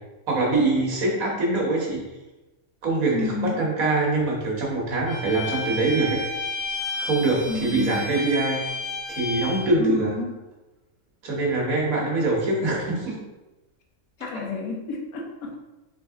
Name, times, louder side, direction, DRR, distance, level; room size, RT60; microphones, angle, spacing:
voice 1, 0.3-2.0 2.8-6.2 7.0-8.6 9.1-10.1 11.2-13.2, right 2 dB, 75° right, -2 dB, 1.7 m, -24 dB
voice 2, 3.1-3.6 7.4-8.0 9.8-10.3 14.2-15.5, left 4 dB, 75° left, 1 dB, 1.2 m, -30 dB
Bowed string instrument, 5.1-9.7, left 2 dB, 55° left, 1.9 m, -31 dB
3.9 x 3.6 x 3.6 m, 1.1 s
omnidirectional pair, 1.5 m